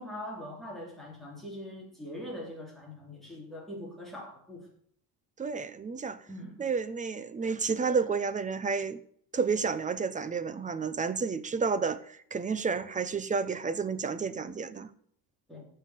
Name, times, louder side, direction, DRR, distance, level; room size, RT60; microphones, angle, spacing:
voice 1, 0.0-4.7 6.3-6.7 15.5-15.7, left 1 dB, ahead, 3.5 m, -42 dB
voice 2, 5.4-6.2 6.6-9.0 9.3-14.9, right 5 dB, 20° right, 0.7 m, -31 dB
15.0 x 5.7 x 9.5 m
cardioid pair, 160°, 38 cm